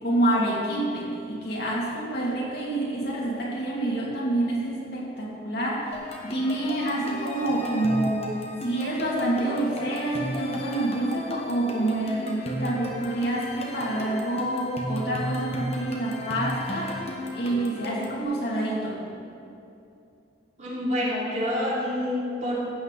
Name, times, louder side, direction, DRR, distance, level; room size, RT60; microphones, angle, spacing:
voice 1, 0.0-6.0 6.2-8.3 8.6-19.0, right 1 dB, 65° left, -5 dB, 2.8 m, -27 dB
sound 1, 5.9-18.2, equal, 35° left, 1.4 m, -35 dB
voice 2, 20.6-22.6, left 1 dB, 45° right, -6 dB, 3.2 m, -27 dB
15.5 x 8.7 x 4.2 m, 2.6 s
head